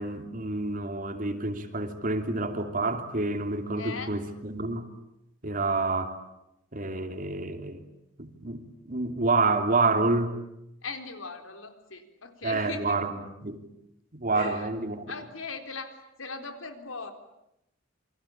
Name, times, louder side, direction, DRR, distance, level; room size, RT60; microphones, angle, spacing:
voice 1, 0.0-4.9 5.4-6.2 6.7-7.8 8.2-10.3 12.4-13.6 14.1-15.1, right 3 dB, 45° right, 6 dB, 2.9 m, -28 dB
voice 2, 3.8-4.1 10.8-13.0 14.3-14.7 15.1-17.1, left 4 dB, 85° left, 7 dB, 4.0 m, -39 dB
29.0 x 23.5 x 8.7 m, 0.83 s
head